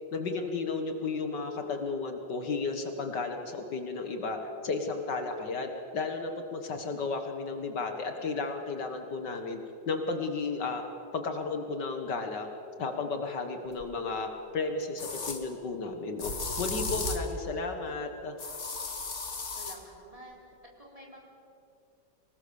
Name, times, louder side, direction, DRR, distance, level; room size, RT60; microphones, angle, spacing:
voice 1, 0.1-4.4 4.6-9.6 9.9-10.8 11.1-12.5 12.8-14.3 14.5-16.3 16.6-18.4, left 4 dB, 65° left, 5 dB, 2.0 m, -33 dB
sound 1, 13.8-13.9 15.0-15.4 16.2-17.3 18.4-19.8, left 3 dB, 40° left, 2.0 m, -35 dB
voice 2, 19.5-20.4 20.8-21.2, right 1 dB, 15° right, -2 dB, 4.1 m, -49 dB
25.0 x 18.5 x 7.1 m, 2.8 s
omnidirectional pair, 2.1 m